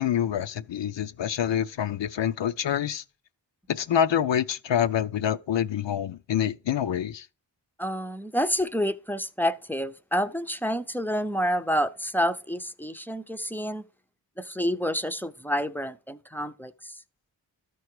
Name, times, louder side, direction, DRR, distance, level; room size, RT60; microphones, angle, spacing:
voice 1, 0.0-3.0 3.7-7.3, left 9 dB, 65° left, 0.6 m, -26 dB
voice 2, 7.8-13.8 14.4-16.9, equal, 5° left, 0.6 m, -28 dB
13.0 x 4.7 x 4.8 m
cardioid pair, 55°, 48 cm